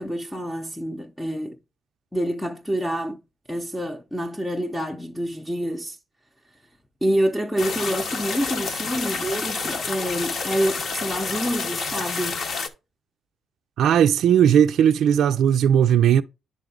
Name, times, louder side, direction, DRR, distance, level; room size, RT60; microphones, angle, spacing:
voice 1, 0.0-1.6 2.1-3.2 3.5-6.0 7.0-12.4, equal, ahead, 0.6 m, -27 dB
sound 1, 7.6-12.7, left 4 dB, 55° left, 0.9 m, -29 dB
voice 2, 13.8-16.2, right 9 dB, 75° right, 0.3 m, -17 dB
9.9 x 3.6 x 3.7 m
cardioid pair, 90°, 0 cm